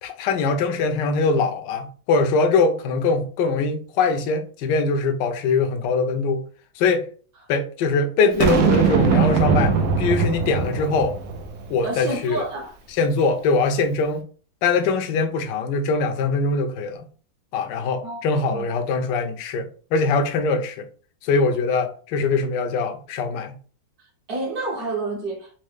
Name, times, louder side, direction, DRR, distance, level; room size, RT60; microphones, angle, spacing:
voice 1, 0.0-6.4 6.8-7.1 7.5-11.2 11.7-12.4 13.0-14.2 14.6-17.0 17.5-20.9 21.2-23.6, left 4 dB, 75° left, 1.2 m, -22 dB
Boom, 8.4-11.7, right 5 dB, 80° right, 0.8 m, -20 dB
voice 2, 11.8-12.7 18.0-18.2 18.5-18.6 24.3-25.5, right 2 dB, 55° right, 1.3 m, -29 dB
4.2 x 2.1 x 3.2 m
omnidirectional pair, 2.1 m